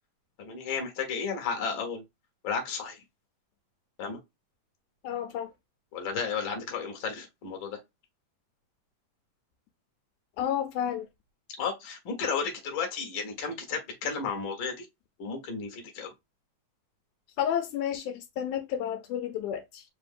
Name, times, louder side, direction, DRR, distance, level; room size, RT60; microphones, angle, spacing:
voice 1, 0.4-2.0 2.4-3.0 4.0-4.2 5.9-7.8 11.6-14.9 15.2-16.1, left 5 dB, 50° left, 1.7 m, -33 dB
voice 2, 5.0-5.5 10.4-11.1 17.4-19.8, left 9 dB, 80° left, 2.0 m, -31 dB
4.7 x 2.5 x 3.6 m
omnidirectional pair, 3.5 m